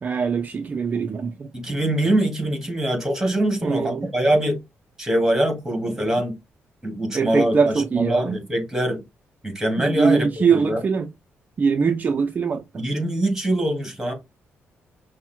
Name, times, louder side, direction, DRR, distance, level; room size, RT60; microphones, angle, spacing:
voice 1, 0.0-1.5 3.6-4.1 7.1-8.4 9.8-11.1 11.6-12.8, right 5 dB, 35° right, 0.4 m, -22 dB
voice 2, 1.5-4.6 5.0-6.3 6.8-9.0 9.4-10.3 10.5-10.8 12.7-14.1, right 1 dB, 10° right, 1.9 m, -23 dB
5.7 x 2.1 x 4.4 m
cardioid pair, 115°, 5 cm